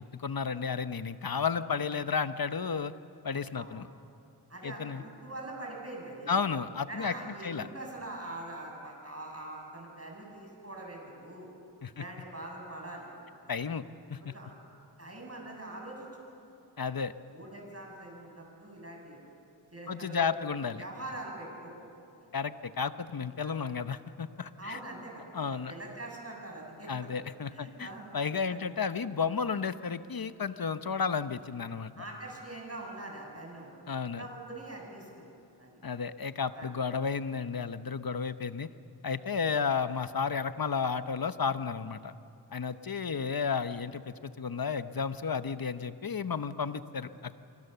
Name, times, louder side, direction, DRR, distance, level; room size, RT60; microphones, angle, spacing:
voice 1, 0.0-2.9 3.2-3.9 4.6-5.0 6.3-7.1 7.4-7.7 11.8-12.0 13.5-13.8 14.1-14.3 16.8-17.1 19.9-20.8 22.3-24.8 25.3-25.7 26.9-27.9 28.1-32.0 33.9-34.3 35.8-38.7 39.0-42.1 42.5-47.4, left 6 dB, 55° left, 12 dB, 0.9 m, -32 dB
voice 2, 4.5-6.4 6.9-11.5 11.9-13.8 14.2-14.5 15.0-16.4 17.3-19.2 19.7-20.3 20.8-21.9 22.2-22.3 23.4-23.6 24.6-25.2 25.5-26.9 27.5-28.1 28.5-28.7 32.0-33.8 34.2-35.3 35.6-35.7 36.5-36.7 42.7-42.8, right 1 dB, 35° right, 0 dB, 7.6 m, -43 dB
26.0 x 23.0 x 6.9 m, 2.6 s
cardioid pair, 45°, 43 cm